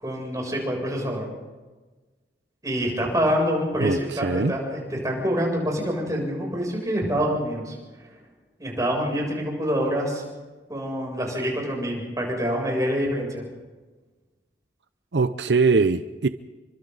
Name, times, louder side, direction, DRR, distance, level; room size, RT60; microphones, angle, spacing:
voice 1, 0.0-1.3 2.6-7.8 8.6-10.2 10.7-13.4, equal, 20° right, -1 dB, 7.4 m, -26 dB
voice 2, 3.8-4.5 15.1-16.3, right 4 dB, 80° right, 12 dB, 0.7 m, -22 dB
30.0 x 24.5 x 4.0 m, 1.3 s
head